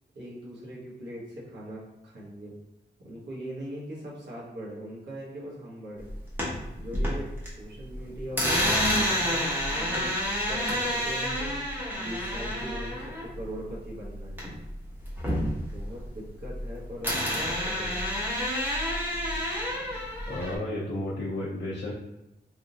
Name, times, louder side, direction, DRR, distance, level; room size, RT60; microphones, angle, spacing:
voice 1, 0.1-2.5 3.0-6.1 6.7-9.4 9.7-14.3 15.6-17.9, equal, 75° right, -6 dB, 1.2 m, -40 dB
sound 1, 6.1-7.5 7.8-14.7 15.0-16.7 17.0-20.6, equal, 10° right, 1.0 m, -29 dB
voice 2, 20.3-21.9, left 1 dB, 70° left, -8 dB, 0.7 m, -32 dB
3.5 x 2.5 x 2.8 m, 0.95 s
wide cardioid pair, 115°, 18 cm